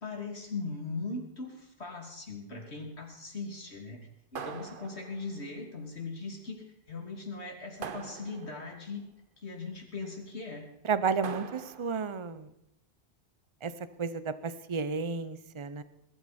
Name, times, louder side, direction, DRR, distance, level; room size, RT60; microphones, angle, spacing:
voice 1, 0.0-4.0 4.3-9.0 9.4-10.7, left 3 dB, 85° left, 2 dB, 3.1 m, -39 dB
sound 1, 4.3-5.4 7.8-8.8 11.2-12.1, right 6 dB, 55° right, 1.1 m, -42 dB
voice 2, 10.8-12.5 13.6-13.7 14.0-15.8, right 5 dB, 30° right, 14 dB, 0.8 m, -32 dB
21.0 x 13.0 x 4.3 m, 0.81 s
omnidirectional pair, 1.1 m